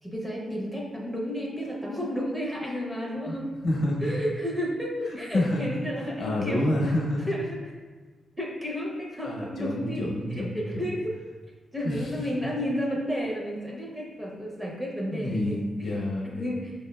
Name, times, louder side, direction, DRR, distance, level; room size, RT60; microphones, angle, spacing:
voice 1, 0.0-3.5 4.0-6.6 7.3-7.7 8.4-10.0 10.5-11.1 11.7-16.0 16.2-16.7, equal, 10° right, -3 dB, 0.6 m, -32 dB
voice 2, 3.6-4.1 5.0-5.8 6.2-7.3 9.2-10.9 11.8-12.5 15.1-16.6, left 1 dB, 60° left, -2 dB, 0.8 m, -29 dB
4.7 x 2.6 x 2.3 m, 1.5 s
wide cardioid pair, 130°, 0 cm